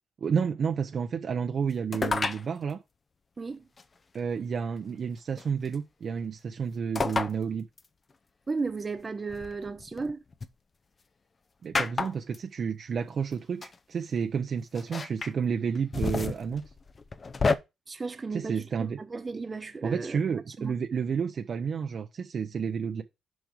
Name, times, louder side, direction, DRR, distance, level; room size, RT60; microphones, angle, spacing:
voice 1, 0.2-2.8 4.1-7.7 11.6-16.6 18.3-19.0 19.8-23.0, right 6 dB, 50° right, 0.7 m, -31 dB
sound 1, 1.9-2.4 3.8-3.9 5.4-5.7 6.9-7.3 7.8-7.9 9.3-10.5 11.7-12.4 13.3-13.4 13.6-13.7 14.7-15.3 15.7-17.5, left 4 dB, 35° left, 0.7 m, -30 dB
voice 2, 3.4-3.7 8.5-10.2 17.9-20.2 20.6-20.7, right 4 dB, 30° right, 1.1 m, -34 dB
6.3 x 5.2 x 5.1 m
cardioid pair, 90°, 0 cm